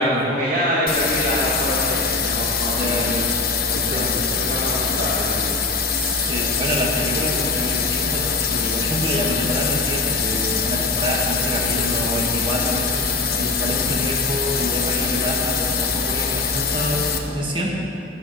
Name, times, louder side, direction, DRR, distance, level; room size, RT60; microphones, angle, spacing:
voice 1, 0.0-3.1 3.6-5.6, equal, 45° right, -7 dB, 1.9 m, -25 dB
sound 1, 0.9-17.2, left 6 dB, 55° left, 1.0 m, -23 dB
voice 2, 2.7-3.3 3.7-4.2 5.9-17.8, equal, 30° right, -2 dB, 1.6 m, -27 dB
11.0 x 6.7 x 9.0 m, 2.7 s
head